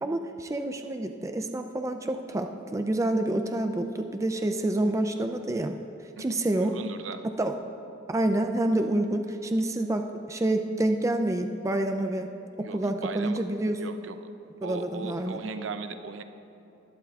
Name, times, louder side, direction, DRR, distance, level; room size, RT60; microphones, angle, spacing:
voice 1, 0.0-5.7 6.2-6.7 7.4-7.5 8.1-10.0 10.3-12.3 12.7-13.8 14.6-15.5, right 1 dB, 15° right, 6 dB, 0.4 m, -28 dB
voice 2, 6.2-7.2 12.6-13.4 13.8-14.2 14.6-16.2, right 4 dB, 75° right, 9 dB, 0.5 m, -38 dB
20.5 x 11.5 x 2.4 m, 2.8 s
head